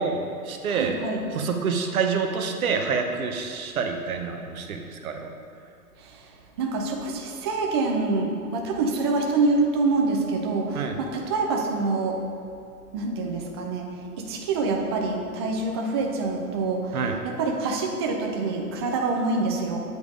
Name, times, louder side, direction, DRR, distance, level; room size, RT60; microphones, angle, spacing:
voice 1, 0.0-0.9 1.3-5.3 10.7-11.0 16.9-17.1, right 5 dB, 65° right, 4 dB, 1.0 m, -27 dB
voice 2, 0.7-1.2 6.0-6.3 6.6-12.2 12.9-13.8 14.2-17.0 17.2-19.8, right 3 dB, 20° right, 1 dB, 0.4 m, -26 dB
8.2 x 5.0 x 4.9 m, 2.5 s
figure-of-eight pair, 110°, 46 cm